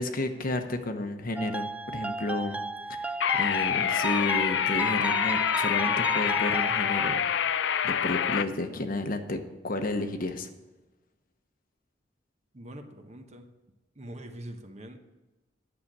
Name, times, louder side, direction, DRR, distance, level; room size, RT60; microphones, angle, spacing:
voice 1, 0.0-2.6 3.0-7.2 7.8-10.5, left 2 dB, 50° left, 7 dB, 1.0 m, -32 dB
sound 1, 1.4-7.2, right 2 dB, 5° right, 0.3 m, -34 dB
sound 2, 3.2-8.4, left 8 dB, 70° left, 0.5 m, -26 dB
voice 2, 12.5-13.5 14.0-15.0, right 1 dB, 40° right, 6 dB, 1.1 m, -43 dB
9.8 x 6.7 x 7.4 m, 1.1 s
head